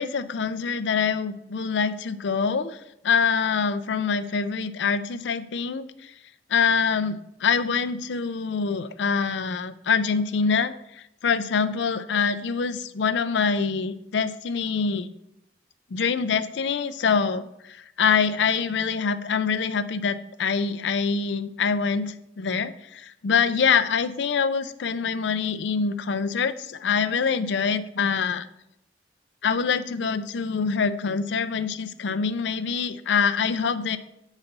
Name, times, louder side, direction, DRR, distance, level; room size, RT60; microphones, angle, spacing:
voice 1, 0.0-2.8 3.0-6.1 6.5-15.1 15.9-28.5 29.4-34.0, left 5 dB, 85° left, 11 dB, 0.5 m, -25 dB
8.1 x 4.1 x 5.3 m, 0.83 s
head